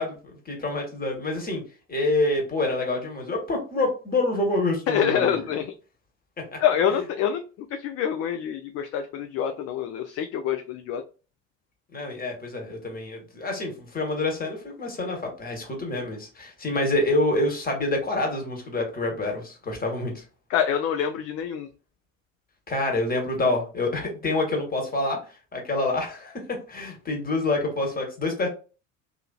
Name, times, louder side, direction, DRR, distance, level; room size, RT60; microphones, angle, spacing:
voice 1, 0.0-1.6 1.9-5.5 6.5-6.6 11.9-20.2 22.7-25.2 25.5-28.5, left 2 dB, 20° left, 1 dB, 1.3 m, -27 dB
voice 2, 4.9-5.7 6.6-7.4 7.8-11.0 20.5-21.7, left 8 dB, 40° left, 6 dB, 0.4 m, -26 dB
2.7 x 2.7 x 2.3 m, 0.35 s
hypercardioid pair, 65°, 39 cm